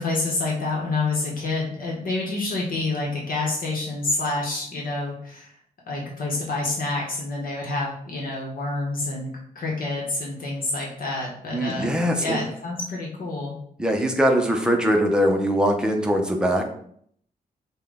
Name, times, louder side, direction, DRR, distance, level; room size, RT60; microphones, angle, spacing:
voice 1, 0.0-5.5 5.9-11.9 12.2-13.6, left 2 dB, 65° left, -3 dB, 1.0 m, -28 dB
voice 2, 11.5-12.4 13.8-16.6, equal, 5° right, 2 dB, 0.6 m, -21 dB
5.7 x 2.2 x 3.5 m, 0.65 s
wide cardioid pair, 155°, 16 cm